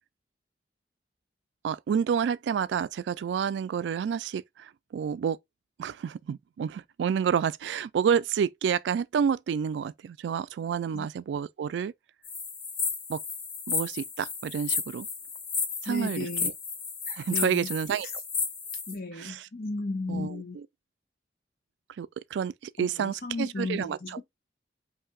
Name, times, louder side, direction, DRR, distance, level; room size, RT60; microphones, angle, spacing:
voice 1, 1.6-5.4 5.8-11.9 13.1-13.2 13.7-15.1 15.8-16.5 17.1-18.1 19.1-19.5 20.1-20.7 22.0-22.5 22.8-24.2, right 7 dB, 85° right, 0.3 m, -29 dB
sound 1, 12.2-18.9, left 5 dB, 90° left, 1.3 m, -33 dB
voice 2, 15.8-16.5 17.3-17.7 18.9-20.6 22.8-24.2, left 3 dB, 55° left, 1.0 m, -34 dB
5.6 x 2.7 x 2.3 m
head